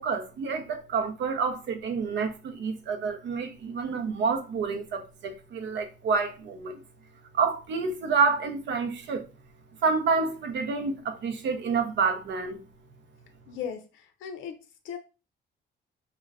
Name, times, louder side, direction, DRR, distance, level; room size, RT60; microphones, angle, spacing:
voice 1, 0.0-6.8 7.3-9.3 9.8-12.6, right 5 dB, 65° right, 0.6 m, -28 dB
voice 2, 13.5-15.0, left 8 dB, 80° left, 0.5 m, -38 dB
2.3 x 2.1 x 3.4 m
cardioid pair, 90°, 20 cm